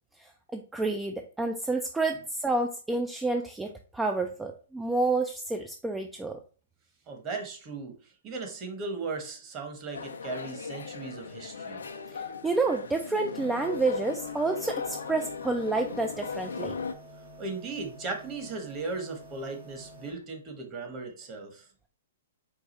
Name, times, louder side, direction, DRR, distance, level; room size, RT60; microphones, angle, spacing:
voice 1, 0.2-6.4 12.1-16.8, right 3 dB, 10° right, 4 dB, 0.3 m, -29 dB
voice 2, 7.1-7.9 8.2-11.8 17.4-21.6, right 3 dB, 30° right, 4 dB, 1.1 m, -37 dB
sound 1, 9.9-16.9, left 5 dB, 90° left, 0.6 m, -38 dB
sound 2, 13.3-20.1, equal, 80° right, 1.9 m, -49 dB
4.7 x 2.3 x 4.2 m, 0.39 s
hypercardioid pair, 135°, 0 cm